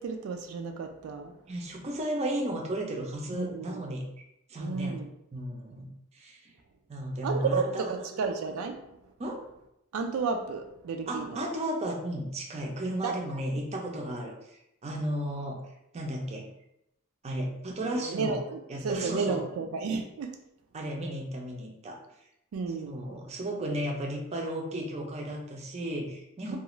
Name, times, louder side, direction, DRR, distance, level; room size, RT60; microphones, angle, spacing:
voice 1, 0.0-1.4 3.3-3.9 4.6-5.1 7.2-8.8 9.9-11.4 12.8-13.2 17.9-20.4 22.5-23.1 26.5-26.6, right 4 dB, 90° right, 5 dB, 0.3 m, -32 dB
voice 2, 1.5-4.1 4.5-5.0 5.3-6.5 6.9-7.9 9.2-9.4 11.1-15.6 15.9-16.5 17.2-18.4 18.7-19.4 20.7-22.0 22.9-26.6, right 1 dB, 30° right, 0 dB, 0.5 m, -34 dB
2.4 x 2.4 x 3.0 m, 0.82 s
head